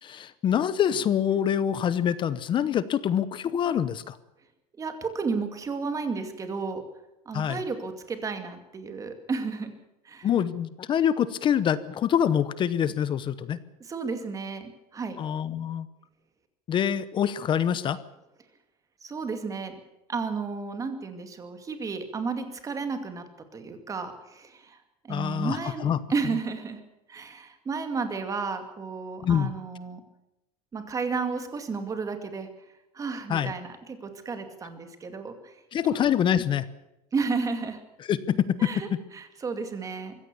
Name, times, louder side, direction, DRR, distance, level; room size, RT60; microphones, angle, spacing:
voice 1, 0.0-4.2 7.3-7.6 10.2-13.6 15.2-15.9 16.7-18.0 25.1-26.0 29.2-29.5 33.3-33.5 35.7-36.7 38.0-39.0, left 9 dB, 25° left, 16 dB, 0.8 m, -25 dB
voice 2, 4.8-6.8 7.3-9.7 10.1-10.3 13.9-15.2 19.0-19.7 20.1-23.2 23.5-24.8 25.0-26.8 27.1-30.0 30.7-32.5 32.9-35.5 35.8-36.0 37.1-37.8 38.6-38.9 39.1-40.1, right 4 dB, 15° right, 8 dB, 2.4 m, -32 dB
23.5 x 16.5 x 7.0 m, 0.92 s
cardioid pair, 170°, 19 cm